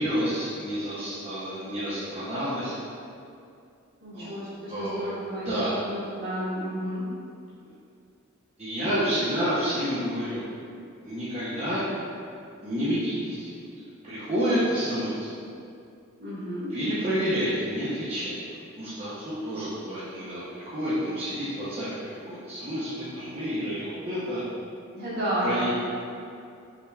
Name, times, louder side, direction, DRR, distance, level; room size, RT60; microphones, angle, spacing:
voice 1, 0.0-2.7 4.1-4.4 4.7-5.1 5.4-5.8 7.6-7.7 8.6-10.5 11.0-11.8 12.6-13.5 13.8-15.3 16.7-18.4 18.8-22.0 22.3-24.4 25.4-25.7, equal, 30° right, -12 dB, 0.7 m, -29 dB
voice 2, 4.0-5.5 5.8-7.1 16.2-16.8 24.9-25.7, equal, 55° right, -9 dB, 1.4 m, -31 dB
5.5 x 3.4 x 2.3 m, 2.5 s
head